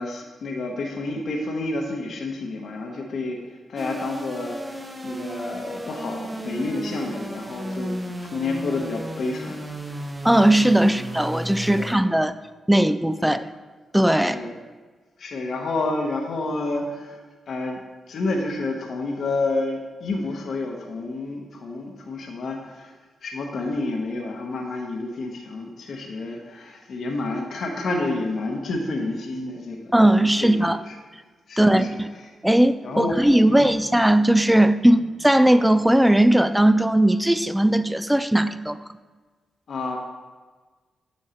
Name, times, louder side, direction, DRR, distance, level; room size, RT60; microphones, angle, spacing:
voice 1, 0.0-4.5 5.0-9.6 11.8-11.9 13.3-13.5 14.2-14.6 15.2-17.2 17.5-17.8 18.1-22.9 23.2-29.9 30.4-30.9 31.5-32.0 32.8-33.2 33.4-33.9 39.7-40.0, left 2 dB, 65° left, 2 dB, 0.9 m, -29 dB
sound 1, 3.8-11.9, right 1 dB, 20° right, 0.9 m, -34 dB
voice 2, 10.2-12.3 12.7-13.5 13.9-14.4 29.9-30.8 31.6-32.1 32.4-38.8, right 1 dB, 5° right, 13 dB, 0.4 m, -18 dB
8.2 x 6.3 x 2.9 m, 1.4 s
hypercardioid pair, 40°, 0 cm